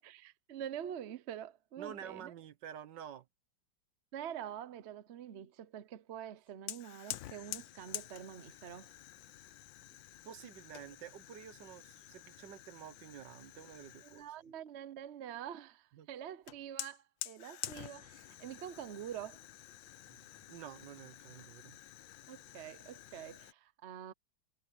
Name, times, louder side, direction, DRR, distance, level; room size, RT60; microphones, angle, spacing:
voice 1, 0.0-2.3 4.1-8.9 14.0-19.4 22.3-24.1, right 10 dB, 50° right, 0.8 m, -46 dB
voice 2, 1.8-3.3 10.2-14.5 15.9-16.1 20.1-21.8, right 9 dB, 70° right, 1.7 m, -50 dB
Fire, 6.7-14.3 16.5-23.5, left 14 dB, 85° left, 1.4 m, -48 dB
omnidirectional pair, 2.0 m